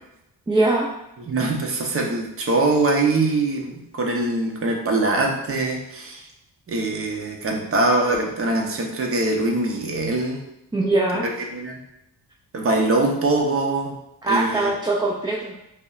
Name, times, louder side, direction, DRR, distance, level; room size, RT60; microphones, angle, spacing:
voice 1, 0.5-0.9 10.7-11.2 14.2-15.5, right 2 dB, 10° right, -4 dB, 0.3 m, -21 dB
voice 2, 1.2-6.2 6.7-10.4 11.2-11.8 12.5-14.0 14.3-14.7, right 2 dB, 35° right, 0 dB, 0.7 m, -23 dB
5.0 x 2.1 x 2.4 m, 0.87 s
cardioid pair, 85°, 41 cm